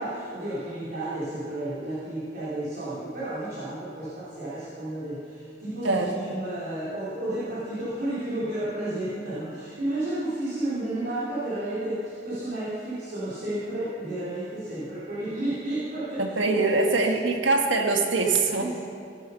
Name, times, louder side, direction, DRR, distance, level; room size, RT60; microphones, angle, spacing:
voice 1, 0.0-16.9 18.6-18.7, right 1 dB, 55° right, -12 dB, 3.2 m, -32 dB
voice 2, 5.8-6.4 16.2-18.7, right 3 dB, 85° right, 3 dB, 1.5 m, -23 dB
17.0 x 8.3 x 5.6 m, 2.4 s
head